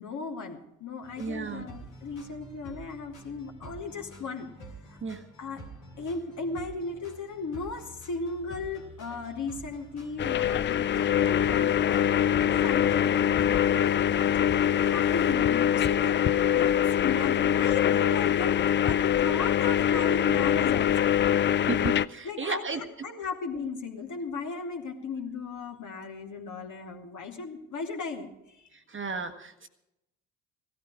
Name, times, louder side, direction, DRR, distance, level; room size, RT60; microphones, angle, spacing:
voice 1, 0.0-4.5 4.9-5.0 5.4-5.6 6.0-14.5 14.9-16.3 16.5-18.5 18.8-21.1 22.2-28.6, left 4 dB, 50° left, 2 dB, 2.6 m, -36 dB
sound 1, 1.0-15.3, right 1 dB, 90° left, 3.3 m, -48 dB
voice 2, 1.2-1.7 5.0-5.2 21.7-22.8 28.9-29.7, right 4 dB, 30° right, 5 dB, 1.6 m, -33 dB
sound 2, 10.2-22.1, left 10 dB, 30° left, 0.4 m, -24 dB
16.5 x 13.0 x 4.9 m, 0.88 s
hypercardioid pair, 50°, 38 cm